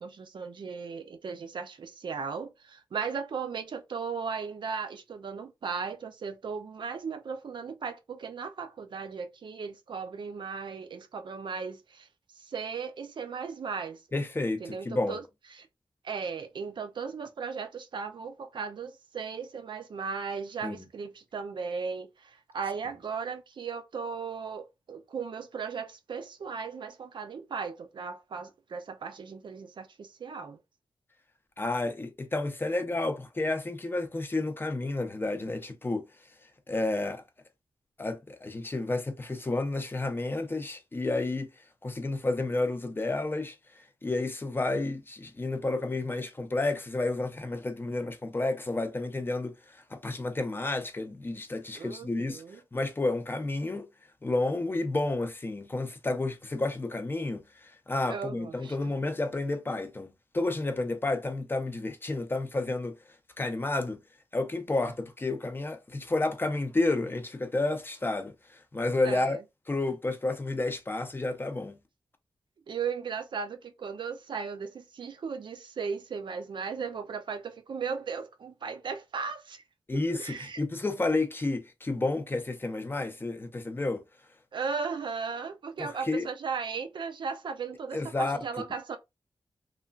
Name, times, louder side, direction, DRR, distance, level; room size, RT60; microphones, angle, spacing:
voice 1, 0.0-12.1 12.4-14.0 14.6-15.2 15.5-15.7 16.0-30.6 51.8-52.6 58.1-58.7 59.0-59.1 69.0-69.4 72.7-79.6 79.9-80.6 84.5-89.0, right 5 dB, 70° right, 0.5 m, -36 dB
voice 2, 14.1-15.2 20.6-20.9 31.6-36.1 36.7-37.2 38.0-41.5 41.8-53.9 54.2-63.0 63.4-64.0 64.3-69.4 69.7-71.8 79.9-84.0 85.8-86.3 87.9-88.4, left 2 dB, 25° left, 0.5 m, -31 dB
3.1 x 2.4 x 2.3 m
wide cardioid pair, 100°, 8 cm